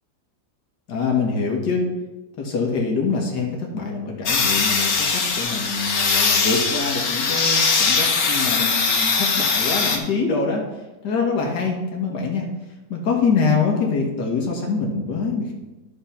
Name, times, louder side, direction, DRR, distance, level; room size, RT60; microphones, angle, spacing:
voice 1, 0.9-1.9 2.4-10.6 11.0-12.5 12.9-15.5, left 4 dB, 85° left, 0 dB, 2.1 m, -24 dB
sound 1, 4.3-10.0, left 4 dB, 65° left, 1.5 m, -21 dB
12.0 x 4.4 x 5.7 m, 1.1 s
omnidirectional pair, 1.8 m